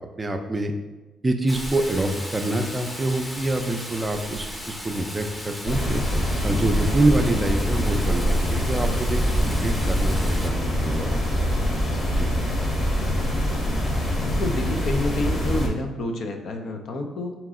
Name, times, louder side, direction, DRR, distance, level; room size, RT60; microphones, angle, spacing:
voice 1, 0.2-0.7 1.2-6.0 6.4-11.2 12.2-12.3, right 2 dB, 25° right, 5 dB, 0.4 m, -26 dB
Rain, 1.5-10.5, equal, 15° left, 0.7 m, -32 dB
sound 1, 5.7-15.7, equal, 35° left, 1.0 m, -24 dB
voice 2, 14.3-17.4, left 2 dB, 60° left, 4 dB, 0.5 m, -28 dB
3.9 x 3.0 x 3.6 m, 1.1 s
cardioid pair, 80°, 0 cm